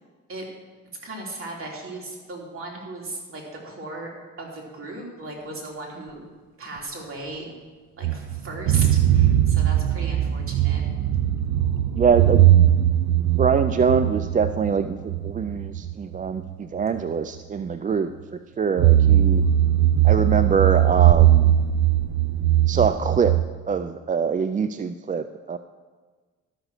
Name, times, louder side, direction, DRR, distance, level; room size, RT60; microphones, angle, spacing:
voice 1, 1.0-4.1 4.4-6.2 6.6-7.5 8.0-10.8, right 2 dB, 45° right, -2 dB, 3.2 m, -36 dB
sound 1, 8.0-16.5 17.0-17.1 18.8-23.4, right 12 dB, 80° right, 0.7 m, -19 dB
voice 2, 12.0-12.8 13.4-19.4 20.0-21.6 22.7-23.4 23.7-25.6, right 6 dB, 25° right, 11 dB, 0.4 m, -24 dB
12.5 x 6.1 x 6.5 m, 1.4 s
cardioid pair, 90°, 30 cm